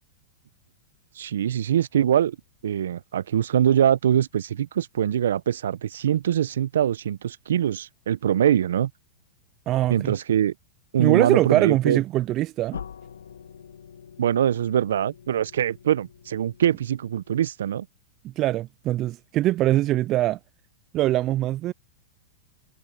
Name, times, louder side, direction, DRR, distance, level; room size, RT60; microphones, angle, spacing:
voice 1, 1.1-2.4 2.6-8.9 9.9-10.5 10.9-12.0 14.2-17.9, right 10 dB, 75° right, 1.0 m, -23 dB
voice 2, 9.7-10.1 11.0-12.8 18.4-20.4 20.9-21.7, right 15 dB, 40° right, 0.5 m, -22 dB
sound 1, 12.7-17.5, left 7 dB, 80° left, 2.3 m, -44 dB
hypercardioid pair, 105°, 0 cm